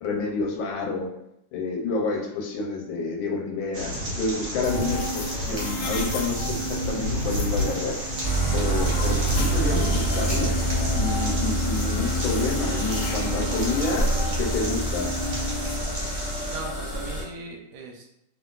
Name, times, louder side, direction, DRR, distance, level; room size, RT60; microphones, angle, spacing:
voice 1, 0.0-1.1 1.5-7.9 8.5-10.6 10.9-15.1, left 3 dB, 90° left, 0 dB, 1.4 m, -29 dB
sound 1, 3.7-16.6, equal, 65° right, 1.2 m, -31 dB
sound 2, 4.6-15.8, right 1 dB, 75° left, 1.2 m, -32 dB
sound 3, 8.2-17.2, right 1 dB, 30° left, 1.1 m, -27 dB
voice 2, 16.5-18.2, right 3 dB, 85° right, 1 dB, 1.4 m, -39 dB
2.8 x 2.7 x 2.3 m, 0.80 s
omnidirectional pair, 2.1 m